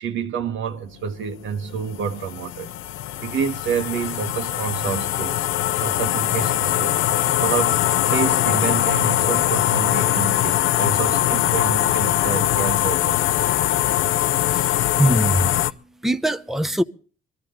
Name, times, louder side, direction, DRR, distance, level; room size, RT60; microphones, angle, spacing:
voice 1, 0.0-2.7 3.2-5.4 5.8-7.0 7.4-13.4, right 7 dB, 75° right, 1.5 m, -28 dB
sound 1, 1.3-15.7, left 13 dB, 90° left, 0.7 m, -22 dB
voice 2, 14.5-15.5 16.0-16.8, right 1 dB, ahead, 0.8 m, -22 dB
23.0 x 13.5 x 3.9 m
cardioid pair, 90°, 20 cm